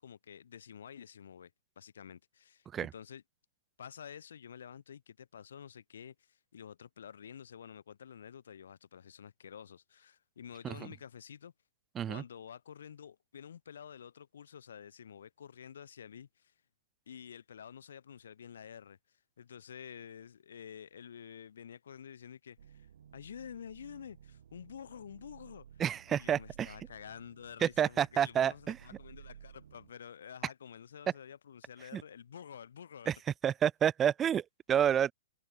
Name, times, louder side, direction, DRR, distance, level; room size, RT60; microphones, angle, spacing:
voice 1, 0.0-1.5 1.8-3.2 3.8-11.5 12.1-16.5 17.1-19.0 19.4-22.9 23.1-25.7 26.1-33.1, left 8 dB, 70° left, 0.6 m, -49 dB
sound 1, 22.6-29.9, right 9 dB, 65° right, 1.4 m, -56 dB
voice 2, 25.8-26.7 27.6-28.8 31.9-32.0 33.1-33.2 33.4-35.1, right 9 dB, 15° right, 0.3 m, -29 dB
hypercardioid pair, 140°, 0 cm